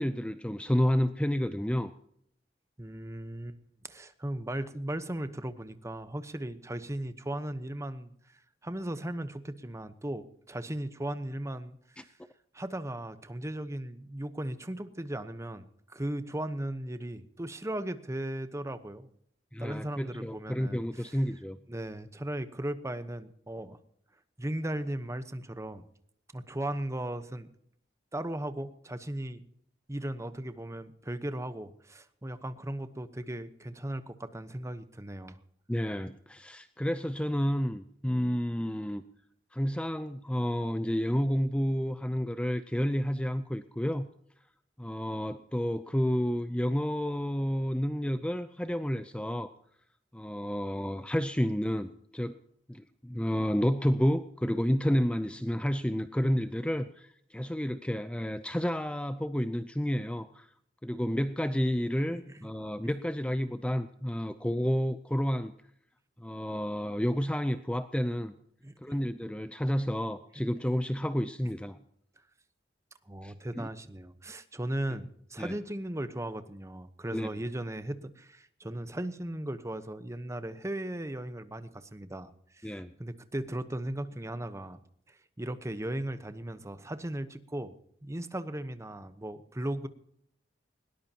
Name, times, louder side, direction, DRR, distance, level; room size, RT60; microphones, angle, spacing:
voice 1, 0.0-1.9 12.0-12.1 19.5-21.6 35.7-39.0 39.5-44.1 44.8-49.5 50.1-52.4 52.7-60.5 60.8-65.5 66.2-68.3 68.8-71.8 73.2-73.7 75.4-75.6 77.1-77.3 82.6-82.9, equal, 5° left, 10 dB, 0.6 m, -30 dB
voice 2, 2.8-3.6 3.8-8.1 8.6-12.1 12.5-19.1 19.6-21.2 21.7-23.8 24.4-25.9 26.3-27.5 28.1-29.4 29.9-35.4 62.1-62.5 68.6-68.8 70.4-70.5 73.1-84.8 85.1-87.7 88.0-89.9, right 1 dB, 15° right, 11 dB, 1.0 m, -37 dB
20.5 x 19.0 x 2.9 m, 0.69 s
head